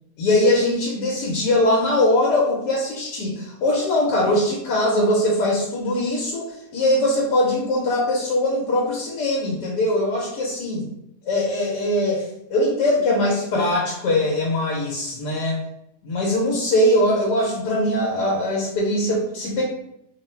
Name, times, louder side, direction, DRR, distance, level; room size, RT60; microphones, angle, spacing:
voice 1, 0.2-10.8 11.3-15.6 16.0-19.6, left 1 dB, 90° left, -2 dB, 1.4 m, -21 dB
3.5 x 2.0 x 4.2 m, 0.80 s
omnidirectional pair, 1.7 m